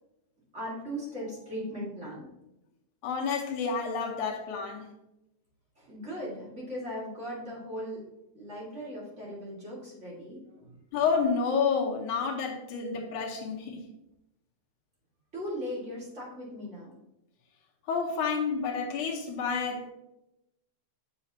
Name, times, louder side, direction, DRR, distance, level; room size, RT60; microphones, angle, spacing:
voice 1, 0.5-2.2 5.8-8.0 8.3-10.7 15.3-16.9, equal, 25° right, -5 dB, 1.9 m, -38 dB
voice 2, 3.0-4.9 10.9-13.8 17.9-19.9, left 5 dB, 90° left, 0 dB, 2.5 m, -29 dB
8.2 x 6.0 x 2.8 m, 0.90 s
omnidirectional pair, 3.4 m